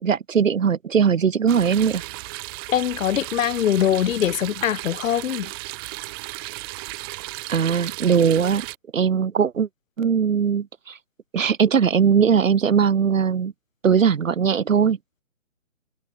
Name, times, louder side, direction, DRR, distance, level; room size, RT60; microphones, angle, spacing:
voice 1, 0.0-2.0 7.5-8.7 8.9-9.7 10.0-11.0 11.3-13.5 13.8-15.0, right 7 dB, 75° right, 1.1 m, -20 dB
sound 1, 1.5-8.8, right 26 dB, 15° right, 2.5 m, -35 dB
voice 2, 2.7-5.5, left 10 dB, 75° left, 0.5 m, -22 dB
hypercardioid pair, 160°, 40 cm